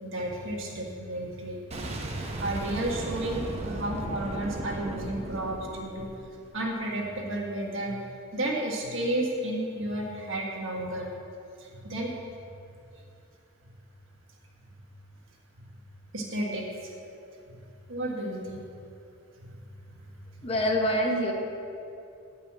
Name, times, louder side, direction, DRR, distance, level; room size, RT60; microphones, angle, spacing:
voice 1, 0.0-1.6 2.0-6.1 6.5-8.0 8.3-11.1 11.6-12.4 14.7-14.8 16.1-16.9 17.9-18.6 19.5-19.6 19.9-20.1, right 1 dB, 60° right, -2 dB, 1.7 m, -32 dB
Boom, 1.7-6.6, right 1 dB, 30° right, 0.8 m, -36 dB
voice 2, 20.4-21.3, equal, 25° left, 1 dB, 0.9 m, -25 dB
10.0 x 5.6 x 7.5 m, 2.7 s
head